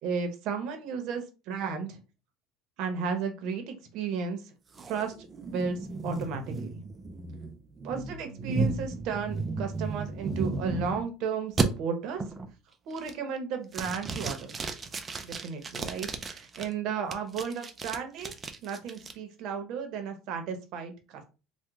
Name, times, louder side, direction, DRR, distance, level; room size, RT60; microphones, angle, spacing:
voice 1, 0.0-2.0 2.8-4.4 4.9-5.1 5.4-5.8 6.0-6.8 7.8-12.2 12.9-14.5 15.2-18.3 18.6-21.2, right 6 dB, 60° right, 6 dB, 0.8 m, -34 dB
sound 1, 4.7-11.1 11.6-11.7 12.2-12.5 12.9-13.4 13.7-16.6 17.1-19.1, right 3 dB, 20° right, 0.4 m, -34 dB
3.0 x 2.1 x 3.4 m, 0.31 s
cardioid pair, 145°, 0 cm